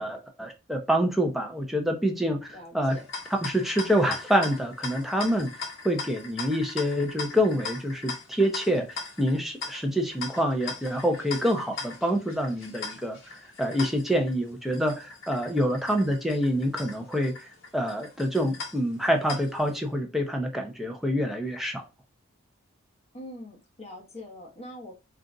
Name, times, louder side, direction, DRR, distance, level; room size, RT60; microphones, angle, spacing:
voice 1, 0.0-3.0 3.4-5.5 5.8-21.8, equal, ahead, 0.5 m, -27 dB
voice 2, 2.5-3.1 23.1-25.0, left 1 dB, 30° left, 1.2 m, -43 dB
sound 1, 2.9-19.8, left 4 dB, 65° left, 1.0 m, -40 dB
3.9 x 2.4 x 3.7 m
head